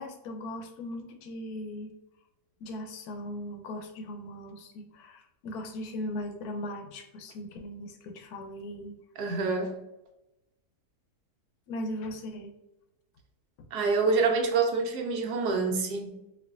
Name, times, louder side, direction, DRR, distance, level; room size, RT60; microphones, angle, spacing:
voice 1, 0.0-1.9 2.6-9.0 11.7-12.5, left 1 dB, 80° left, 3 dB, 1.2 m, -38 dB
voice 2, 9.2-9.8 13.7-16.2, right 4 dB, 85° right, 3 dB, 1.3 m, -27 dB
4.5 x 2.5 x 2.4 m, 0.93 s
omnidirectional pair, 1.7 m